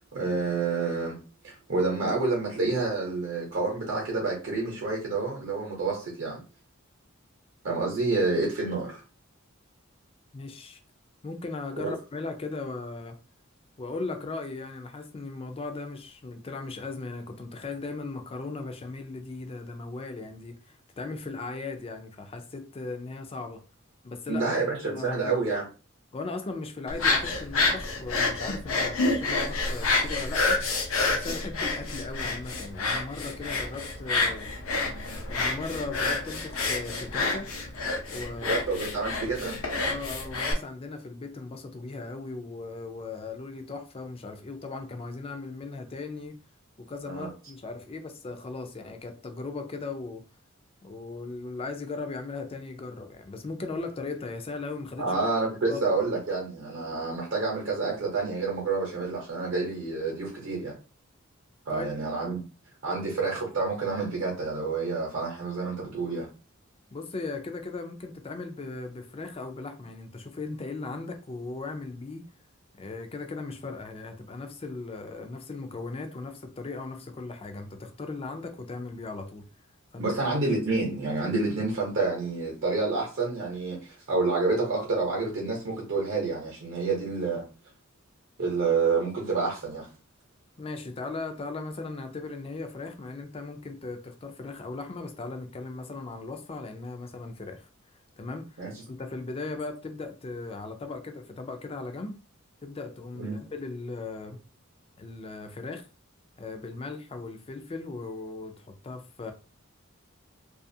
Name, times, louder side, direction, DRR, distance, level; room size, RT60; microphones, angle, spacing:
voice 1, 0.1-1.1 1.4-6.4 7.6-9.0 11.8-11.9 24.3-25.6 38.4-39.6 47.0-47.3 55.0-60.7 61.7-62.4 62.8-66.3 80.0-87.4 88.4-89.9 98.6-98.8 103.2-103.4, right 3 dB, 60° right, 0.8 m, -28 dB
voice 2, 10.3-10.8 11.2-13.2 13.8-23.6 24.0-24.6 24.8-25.4 26.1-30.6 31.1-34.5 35.3-37.5 38.1-38.6 39.8-46.4 46.8-50.2 50.8-55.2 55.7-55.8 61.7-61.9 66.9-72.3 72.8-79.5 79.9-80.1 90.6-97.7 98.2-98.6 98.9-102.2 102.6-104.4 105.0-105.8 106.4-109.3, left 3 dB, 30° left, 0.4 m, -37 dB
sound 1, 26.9-40.5, left 3 dB, 80° left, 0.7 m, -28 dB
2.4 x 2.4 x 2.6 m
head